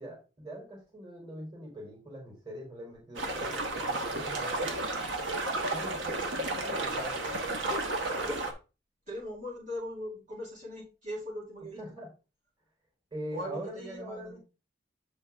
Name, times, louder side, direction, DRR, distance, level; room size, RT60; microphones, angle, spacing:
voice 1, 0.0-4.7 5.7-7.3 11.8-12.1 13.1-14.4, right 1 dB, 25° right, -2 dB, 3.5 m, -42 dB
sound 1, 3.2-8.5, right 2 dB, 85° right, 1.3 m, -32 dB
voice 2, 9.1-11.8 13.3-14.4, left 1 dB, 40° right, -8 dB, 3.1 m, -40 dB
8.0 x 4.7 x 3.5 m, 0.31 s
head